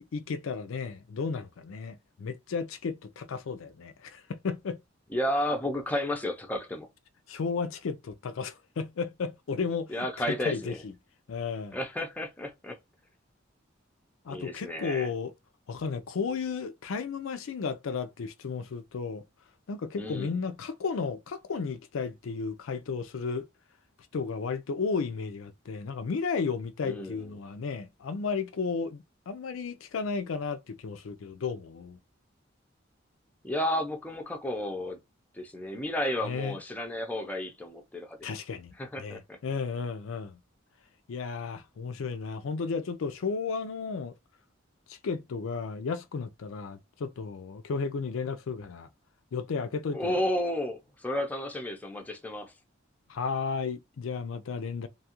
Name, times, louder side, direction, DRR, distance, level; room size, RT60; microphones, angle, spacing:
voice 1, 0.0-4.8 7.3-10.9 11.3-11.8 14.3-15.3 15.7-19.2 19.7-23.5 24.1-32.0 36.2-36.6 38.2-40.4 41.1-44.1 44.9-48.9 49.3-50.2 53.1-54.9, left 5 dB, 85° left, 0.4 m, -33 dB
voice 2, 5.1-6.9 9.9-10.8 11.7-12.8 14.3-15.1 20.0-20.4 26.8-27.3 33.4-35.0 35.3-38.2 38.8-39.4 49.9-52.5, left 1 dB, 10° left, 0.5 m, -32 dB
2.7 x 2.3 x 2.9 m
head